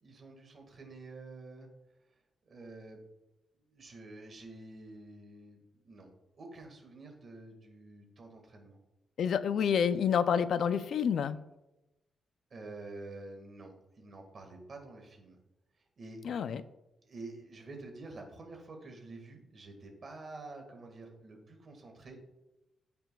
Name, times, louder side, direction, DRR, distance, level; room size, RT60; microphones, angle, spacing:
voice 1, 0.0-1.7 2.5-3.0 3.7-6.1 6.4-8.8 12.5-15.4 15.8-16.2 16.5-16.6 17.0-22.2, right 2 dB, 35° right, 3 dB, 1.7 m, -48 dB
voice 2, 9.2-11.4 16.3-16.6, left 7 dB, 60° left, 13 dB, 0.3 m, -28 dB
13.5 x 6.0 x 2.3 m, 0.95 s
wide cardioid pair, 175°, 0 cm